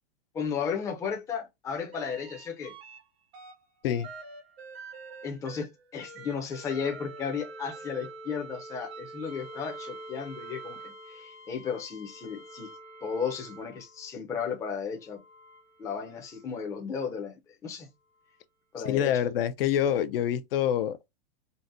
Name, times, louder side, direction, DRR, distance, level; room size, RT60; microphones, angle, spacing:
voice 1, 0.3-2.7 5.2-12.7 13.0-15.2 15.8-17.9 18.7-19.1, left 6 dB, 10° left, 0.5 m, -34 dB
sound 1, 1.9-3.0 3.3-14.1 15.0-16.5 18.2-18.3, right 2 dB, 80° right, 1.5 m, -46 dB
voice 2, 18.9-21.1, left 10 dB, 65° left, 0.5 m, -26 dB
3.9 x 2.0 x 2.5 m
supercardioid pair, 145°, 31 cm